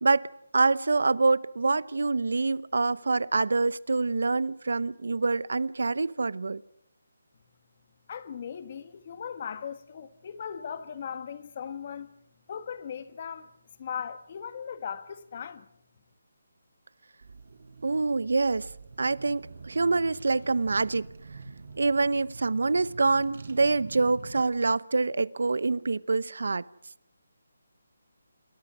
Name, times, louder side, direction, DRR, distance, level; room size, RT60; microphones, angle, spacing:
voice 1, 0.0-6.6 17.8-18.7 19.0-21.1 21.8-26.7, right 3 dB, 75° right, 0.8 m, -26 dB
voice 2, 8.1-12.1 12.5-13.5 13.8-15.7, left 7 dB, 30° left, 1.5 m, -38 dB
Car / Engine, 17.2-24.4, right 4 dB, 55° right, 4.9 m, -45 dB
28.5 x 21.5 x 6.2 m
hypercardioid pair, 170°, 0 cm